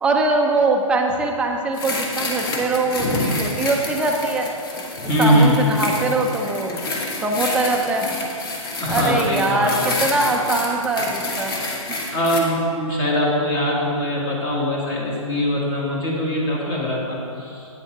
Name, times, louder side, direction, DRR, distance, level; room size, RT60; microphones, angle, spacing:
voice 1, 0.0-4.5 5.2-6.8 7.2-8.2 8.9-11.5 11.9-12.0, right 2 dB, 5° right, 1 dB, 0.4 m, -22 dB
sound 1, 1.7-12.4, left 2 dB, 40° left, 1.3 m, -29 dB
voice 2, 3.0-3.4 5.0-5.7 8.8-10.0 12.1-17.7, equal, 25° left, -3 dB, 1.7 m, -22 dB
8.7 x 6.3 x 4.5 m, 2.6 s
hypercardioid pair, 145°, 18 cm